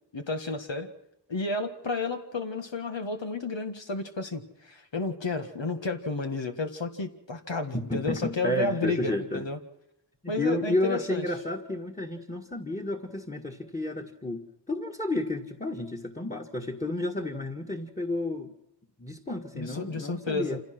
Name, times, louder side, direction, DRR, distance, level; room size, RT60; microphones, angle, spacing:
voice 1, 0.1-0.9 1.3-9.6 10.3-11.3 19.5-20.6, left 3 dB, 85° left, 5 dB, 1.8 m, -32 dB
voice 2, 7.7-9.5 10.2-18.5 19.0-20.6, left 1 dB, 15° left, 6 dB, 1.8 m, -31 dB
27.0 x 16.5 x 6.1 m, 0.83 s
wide cardioid pair, 60°, 43 cm